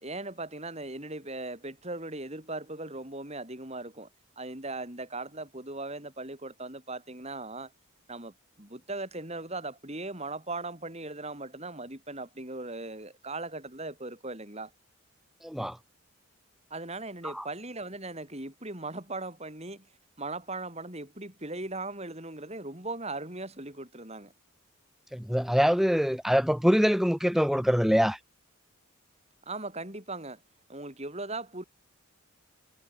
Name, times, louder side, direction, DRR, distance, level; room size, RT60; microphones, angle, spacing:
voice 1, 0.0-4.1 4.4-7.7 8.1-14.7 16.7-19.9 20.2-24.3 29.5-30.4 30.7-31.6, right 2 dB, 30° right, 4.7 m, -38 dB
voice 2, 15.4-15.8 17.3-17.4 25.1-28.2, equal, ahead, 1.2 m, -24 dB
head